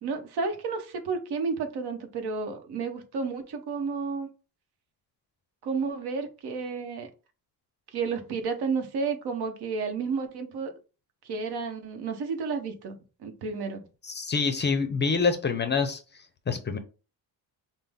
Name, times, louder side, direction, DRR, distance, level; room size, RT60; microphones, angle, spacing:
voice 1, 0.0-4.3 5.6-7.1 7.9-10.7 11.2-13.8, right 4 dB, 70° right, 0.9 m, -31 dB
voice 2, 14.0-16.0 16.5-16.8, left 5 dB, 25° left, 0.5 m, -26 dB
5.7 x 2.0 x 3.5 m
cardioid pair, 150°, 41 cm